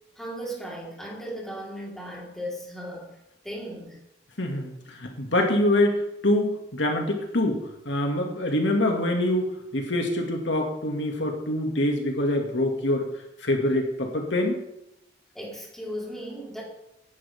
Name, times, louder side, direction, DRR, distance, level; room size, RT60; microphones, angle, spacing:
voice 1, 0.2-3.1 3.4-4.0 15.3-16.6, equal, ahead, -4 dB, 4.2 m, -36 dB
voice 2, 4.4-7.6 7.9-13.1 13.4-14.6, left 1 dB, 75° left, 2 dB, 2.4 m, -25 dB
18.0 x 11.5 x 3.7 m, 0.84 s
head